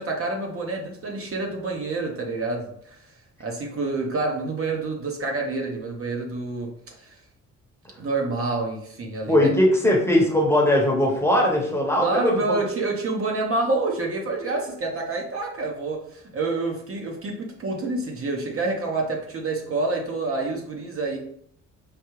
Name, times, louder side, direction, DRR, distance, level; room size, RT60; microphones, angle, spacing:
voice 1, 0.0-3.0 3.4-7.2 8.0-9.5 12.0-21.2, right 3 dB, 45° right, 1 dB, 0.9 m, -28 dB
voice 2, 9.3-12.6, left 1 dB, 10° left, -2 dB, 1.0 m, -20 dB
5.0 x 2.4 x 3.1 m, 0.67 s
cardioid pair, 90°, 30 cm